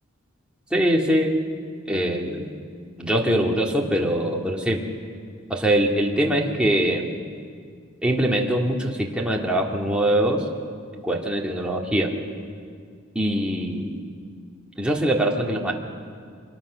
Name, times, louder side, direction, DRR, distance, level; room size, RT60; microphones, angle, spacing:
voice 1, 0.7-1.4 1.9-2.5 3.0-4.8 5.5-7.1 8.0-10.5 11.0-12.1 13.1-14.0 14.8-15.7, right 1 dB, 5° right, -2 dB, 2.3 m, -23 dB
25.0 x 22.5 x 6.4 m, 2.1 s
head